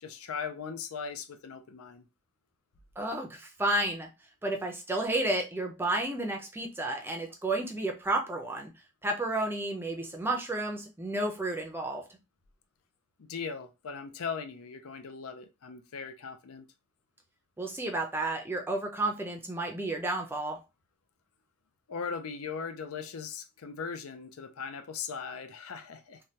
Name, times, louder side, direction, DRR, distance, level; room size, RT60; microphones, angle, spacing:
voice 1, 0.0-2.1 13.2-16.7 21.9-26.2, left 6 dB, 85° left, 0.5 m, -39 dB
voice 2, 3.0-4.1 4.4-8.7 9.0-12.0 17.6-20.6, right 2 dB, 10° right, 0.4 m, -31 dB
3.1 x 2.2 x 2.8 m
head